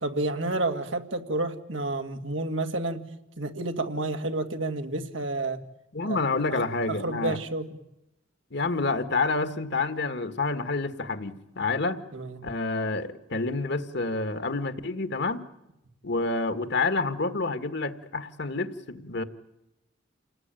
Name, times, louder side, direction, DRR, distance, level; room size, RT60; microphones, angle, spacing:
voice 1, 0.0-5.6 6.0-6.2 6.5-6.6 6.9-7.7 12.1-12.4, right 2 dB, 85° right, 6 dB, 2.2 m, -30 dB
voice 2, 5.9-7.4 8.5-12.0 12.4-15.5 16.0-19.2, left 3 dB, 60° left, 10 dB, 1.6 m, -28 dB
28.5 x 19.0 x 9.0 m, 0.90 s
head